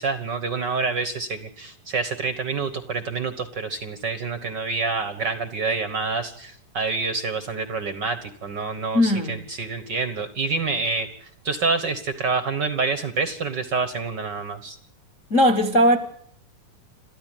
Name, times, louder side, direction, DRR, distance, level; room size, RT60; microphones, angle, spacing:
voice 1, 0.0-11.1 11.4-14.8, right 4 dB, 60° right, 11 dB, 1.1 m, -27 dB
voice 2, 8.9-9.4 15.3-16.0, equal, 45° left, 8 dB, 0.9 m, -18 dB
28.5 x 13.5 x 9.2 m, 0.67 s
omnidirectional pair, 4.0 m